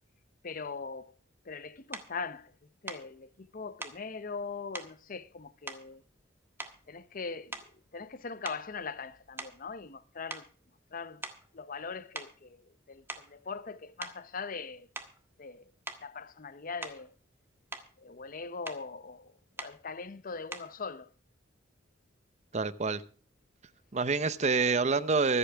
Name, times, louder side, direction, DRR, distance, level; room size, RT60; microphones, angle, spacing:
voice 1, 0.4-1.1 1.4-2.5 2.8-6.0 6.9-7.6 7.9-10.5 10.9-11.2 11.5-14.9 15.4-15.7 16.0-17.2 18.0-21.1, left 4 dB, 45° left, 0.7 m, -41 dB
sound 1, 1.9-2.1 2.9-3.1 3.8-4.0 4.7-5.0 5.7-6.3 6.6-7.0 7.5-7.9 8.4-10.0 10.3-10.5 11.2-11.5 12.2-12.4 12.9-13.4 14.0-14.2 15.0-15.2 15.9-16.1 16.8-17.1 17.5-17.9 18.7-18.9 19.6-19.8 20.5-20.8, right 2 dB, 10° right, 1.4 m, -43 dB
voice 2, 22.5-23.0 23.9-25.4, right 4 dB, 35° right, 0.7 m, -27 dB
24.5 x 8.4 x 3.4 m
head